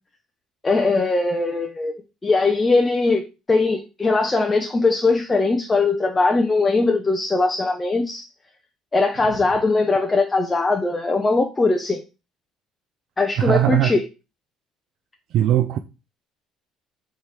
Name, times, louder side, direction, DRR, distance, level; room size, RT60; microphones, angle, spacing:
voice 1, 0.6-1.9 2.2-3.2 3.5-8.3 8.9-12.0 13.2-14.0, left 3 dB, 25° left, 0.6 m, -20 dB
voice 2, 13.4-13.9 15.3-15.8, right 12 dB, 65° right, 0.3 m, -19 dB
3.5 x 3.1 x 4.2 m
supercardioid pair, 75°, 0 cm